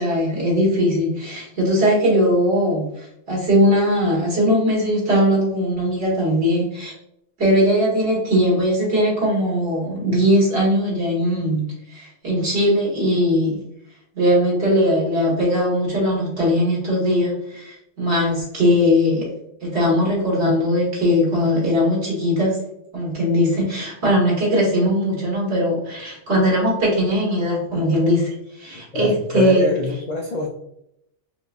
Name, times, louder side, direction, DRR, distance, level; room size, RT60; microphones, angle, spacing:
voice 1, 0.0-6.9 7.4-11.6 11.9-13.6 14.1-19.3 19.6-22.6 22.9-29.6, equal, 60° right, -5 dB, 1.8 m, -19 dB
voice 2, 28.9-30.5, left 2 dB, 65° left, 0 dB, 0.4 m, -26 dB
4.8 x 2.2 x 2.4 m, 0.79 s
omnidirectional pair, 1.2 m